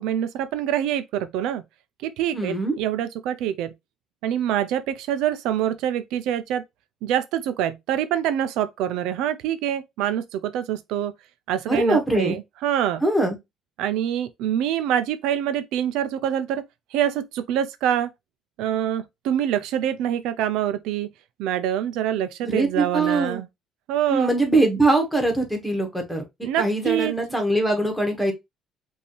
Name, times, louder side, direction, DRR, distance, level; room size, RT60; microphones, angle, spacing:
voice 1, 0.0-1.6 2.0-3.7 4.2-6.6 7.0-11.1 11.5-13.0 13.8-16.6 16.9-18.1 18.6-21.1 21.4-23.5 23.9-24.3 26.4-27.1, right 10 dB, 90° right, 0.6 m, -25 dB
voice 2, 2.3-2.7 11.7-12.4 13.0-13.4 22.4-23.4 24.1-28.3, right 2 dB, 5° left, 1.5 m, -22 dB
5.4 x 2.8 x 3.2 m
cardioid pair, 140°, 0 cm